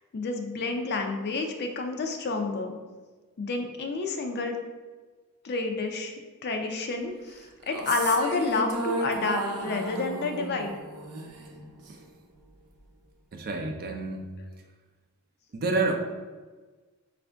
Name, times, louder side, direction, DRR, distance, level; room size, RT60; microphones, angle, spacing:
voice 1, 0.1-2.8 3.4-4.6 5.4-7.4 7.7-10.7, left 3 dB, 45° left, 4 dB, 0.5 m, -29 dB
sound 1, 7.6-12.1, right 1 dB, 85° right, 0.7 m, -34 dB
voice 2, 13.3-14.3 15.5-16.0, right 3 dB, 45° right, 4 dB, 0.5 m, -28 dB
5.1 x 2.5 x 3.4 m, 1.3 s
head